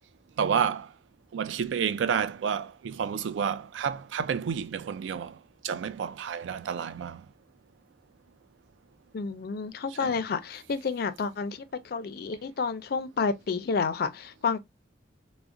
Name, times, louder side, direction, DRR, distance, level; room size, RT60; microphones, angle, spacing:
voice 1, 0.4-0.9 1.3-5.4 5.6-7.2 10.0-10.2, right 7 dB, 85° right, 0.3 m, -30 dB
voice 2, 9.1-14.6, left 5 dB, 55° left, 0.4 m, -30 dB
2.3 x 2.0 x 3.7 m
head